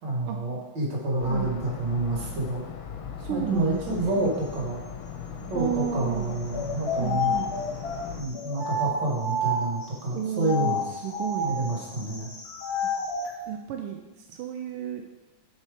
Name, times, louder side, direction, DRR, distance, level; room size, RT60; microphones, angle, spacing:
voice 1, 0.0-2.6 3.3-4.8 5.4-7.3 8.2-10.9 11.4-12.3, right 2 dB, 60° right, -3 dB, 2.5 m, -28 dB
sound 1, 1.2-8.2, left 6 dB, 75° left, 1.4 m, -38 dB
voice 2, 3.2-4.2 5.5-6.3 6.9-7.5 10.1-11.5 12.8-12.9 13.5-15.1, right 9 dB, 90° right, 3 dB, 1.5 m, -32 dB
sound 2, 6.5-9.9 10.4-13.3, left 2 dB, 50° left, 0.7 m, -30 dB
7.4 x 4.3 x 5.0 m, 1.2 s
omnidirectional pair, 2.3 m